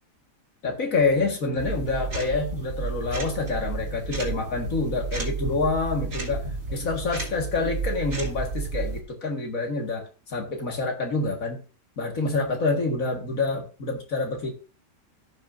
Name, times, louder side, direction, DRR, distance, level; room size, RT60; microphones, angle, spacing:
voice 1, 0.6-11.6 12.0-14.5, left 3 dB, 55° left, 2 dB, 2.2 m, -27 dB
sound 1, 1.6-9.0, right 3 dB, 70° right, 2.6 m, -32 dB
15.5 x 5.7 x 2.6 m, 0.34 s
omnidirectional pair, 1.8 m